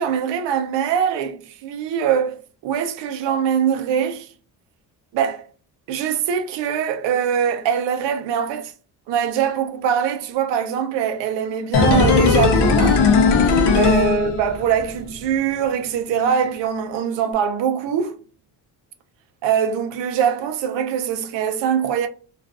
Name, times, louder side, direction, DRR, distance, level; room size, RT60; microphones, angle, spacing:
voice 1, 0.0-4.3 5.1-5.5 5.9-8.7 9.1-13.0 13.8-18.2 19.4-22.1, right 8 dB, 80° right, 0.6 m, -22 dB
sound 1, 11.7-14.9 15.1-15.2, left 4 dB, 70° left, 0.6 m, -17 dB
2.5 x 2.3 x 2.4 m
cardioid pair, 140°, 42 cm